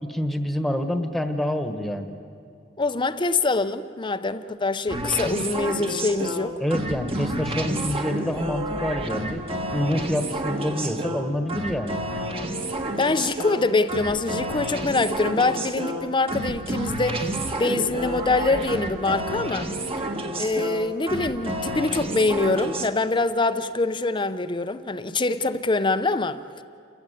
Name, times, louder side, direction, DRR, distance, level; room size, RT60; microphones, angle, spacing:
voice 1, 0.0-2.1 6.6-9.4 9.7-12.0, left 1 dB, ahead, 1.4 m, -27 dB
voice 2, 2.8-6.6 13.0-19.7 20.4-26.4, left 3 dB, 25° left, 0.6 m, -24 dB
sound 1, 4.9-22.9, right 1 dB, 30° right, 1.4 m, -30 dB
29.0 x 15.0 x 9.1 m
head